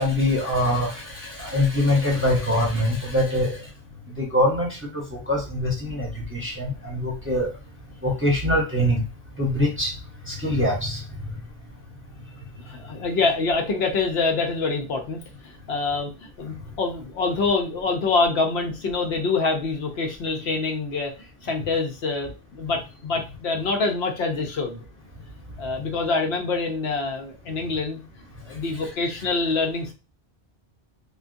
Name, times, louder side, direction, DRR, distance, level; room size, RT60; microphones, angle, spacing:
voice 1, 0.0-3.6 4.1-7.5 8.0-9.0 9.4-9.9 10.3-11.0 13.2-13.3, left 1 dB, 15° right, -3 dB, 0.8 m, -23 dB
voice 2, 12.6-24.8 25.6-28.0 28.5-29.9, left 3 dB, 75° left, 2 dB, 0.9 m, -26 dB
3.6 x 2.3 x 2.5 m, 0.30 s
omnidirectional pair, 1.1 m